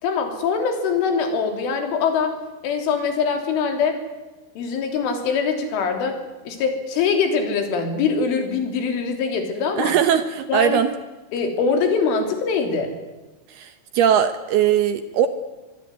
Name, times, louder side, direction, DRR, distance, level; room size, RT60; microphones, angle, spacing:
voice 1, 0.0-2.4 2.6-4.0 4.6-6.2 6.5-9.9 10.5-10.8 11.3-12.9, left 5 dB, 80° left, 5 dB, 5.8 m, -23 dB
voice 2, 9.8-10.9 13.5-15.3, right 9 dB, 70° right, 10 dB, 2.6 m, -20 dB
26.0 x 21.5 x 9.9 m, 1.2 s
omnidirectional pair, 5.6 m